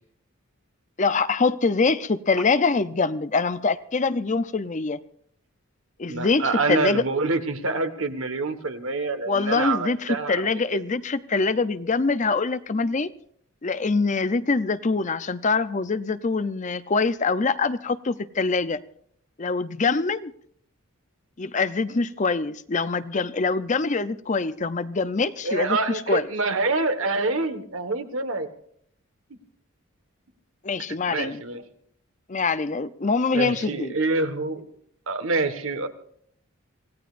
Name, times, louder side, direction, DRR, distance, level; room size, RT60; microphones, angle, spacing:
voice 1, 1.0-5.0 6.0-7.0 9.3-13.1 13.6-18.8 19.4-20.3 21.4-26.3 30.6-31.4 32.3-33.9, left 4 dB, 35° left, 0.6 m, -24 dB
voice 2, 6.1-10.8 25.4-28.5 30.8-31.6 33.3-34.6 35.1-35.9, right 3 dB, 70° right, 1.5 m, -26 dB
26.0 x 17.0 x 2.6 m
head